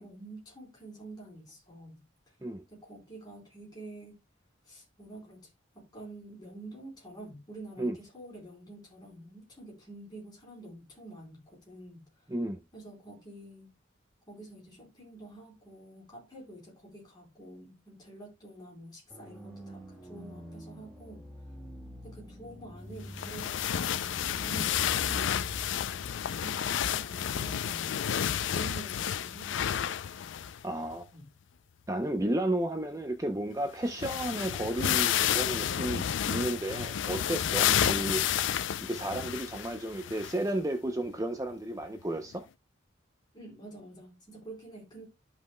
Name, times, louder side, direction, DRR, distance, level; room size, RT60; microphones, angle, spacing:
voice 1, 0.0-2.3 2.7-4.2 4.6-12.3 12.7-13.7 14.3-21.3 22.0-25.5 26.4-29.8 31.1-31.3 37.7-38.1 43.3-45.1, right 2 dB, 20° left, 4.0 m, -48 dB
voice 2, 12.3-12.6 30.6-31.0 31.9-38.2 38.8-42.4, right 1 dB, 15° right, 0.6 m, -32 dB
sound 1, 19.1-26.1, equal, 5° left, 1.4 m, -46 dB
sound 2, 23.1-30.6 30.9-31.0 33.5-33.6 33.8-40.5 41.1-41.2 42.3-42.4, left 10 dB, 70° left, 0.4 m, -30 dB
13.5 x 5.3 x 2.2 m
head